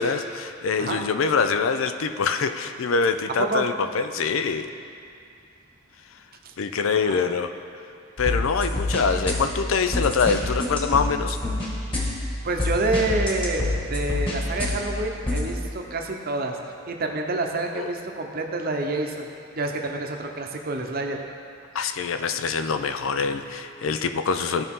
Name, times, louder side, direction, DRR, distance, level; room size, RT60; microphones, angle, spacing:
voice 1, 0.0-4.7 6.6-7.5 8.2-11.4 17.8-17.9 21.7-24.6, left 5 dB, 85° left, 9 dB, 0.5 m, -24 dB
sound 1, 8.2-15.4, left 1 dB, 25° left, 1.7 m, -28 dB
voice 2, 12.4-16.6 16.9-19.3 19.5-21.2, right 2 dB, 50° right, 2 dB, 0.8 m, -28 dB
15.5 x 5.4 x 3.7 m, 2.5 s
head